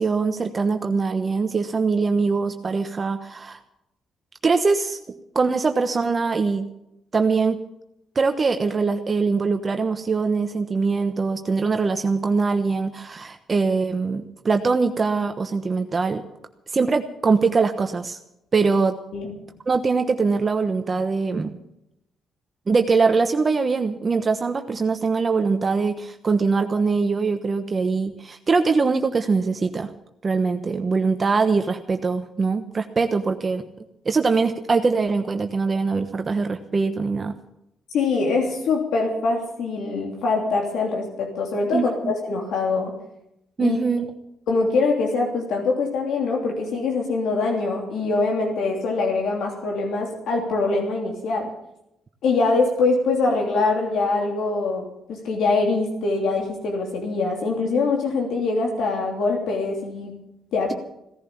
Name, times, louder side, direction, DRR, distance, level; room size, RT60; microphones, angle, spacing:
voice 1, 0.0-3.6 4.4-5.0 5.3-6.7 7.1-7.6 8.1-16.2 16.7-18.2 18.5-19.0 19.7-21.6 22.7-29.9 30.2-33.6 34.0-37.3 41.7-42.1 43.6-44.1, right 4 dB, 35° right, 7 dB, 1.1 m, -22 dB
voice 2, 37.9-42.9 43.6-43.8 44.5-51.5 52.2-60.1 60.5-60.7, left 3 dB, 75° left, 1 dB, 3.1 m, -23 dB
17.0 x 11.0 x 7.2 m, 0.83 s
cardioid pair, 90°, 0 cm